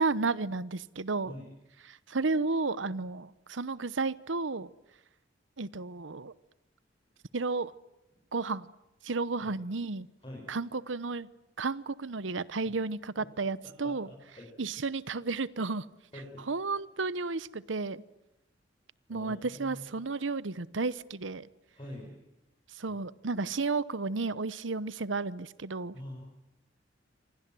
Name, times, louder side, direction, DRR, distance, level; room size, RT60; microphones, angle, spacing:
voice 1, 0.0-1.3 1.8-4.7 5.6-6.3 7.3-7.7 8.3-8.7 9.0-10.1 10.5-11.3 11.6-14.1 14.6-15.9 16.5-18.0 19.1-21.5 22.7-25.9, right 3 dB, 90° right, 18 dB, 0.9 m, -32 dB
voice 2, 13.8-14.5 16.1-16.4 19.1-19.8 21.7-22.2 25.9-26.2, left 1 dB, 30° left, -3 dB, 6.4 m, -45 dB
28.0 x 25.5 x 7.7 m, 0.97 s
head